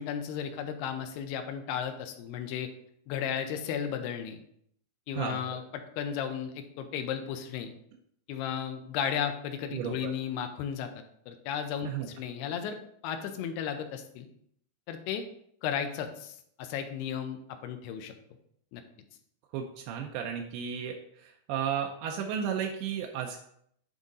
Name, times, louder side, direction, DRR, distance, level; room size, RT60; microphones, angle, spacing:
voice 1, 0.0-2.7 3.1-4.4 5.1-7.7 8.3-12.8 13.0-14.3 14.9-15.3 15.6-18.1 18.7-18.8, left 8 dB, 90° left, 6 dB, 2.8 m, -34 dB
voice 2, 9.7-10.1 11.9-12.1 19.5-23.4, right 8 dB, 85° right, 2 dB, 2.6 m, -34 dB
10.5 x 3.6 x 4.0 m, 0.69 s
omnidirectional pair, 4.5 m